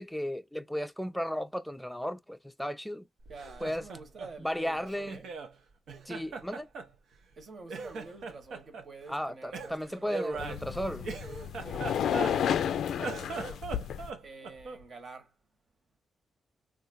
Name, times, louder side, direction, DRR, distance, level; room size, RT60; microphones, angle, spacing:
voice 1, 0.0-3.0 3.6-3.8 4.4-5.2 6.1-6.7 9.1-11.0, equal, 5° left, 0.5 m, -35 dB
Laughter, 3.2-5.5 5.9-7.4 7.7-8.9 9.5-12.6 12.9-14.9, right 4 dB, 75° right, 0.7 m, -40 dB
voice 2, 3.3-5.3 7.4-13.3 14.2-15.4, right 3 dB, 55° right, 1.2 m, -49 dB
sound 1, 10.4-14.1, left 9 dB, 75° left, 0.3 m, -32 dB
3.8 x 2.4 x 2.5 m
supercardioid pair, 50°, 0 cm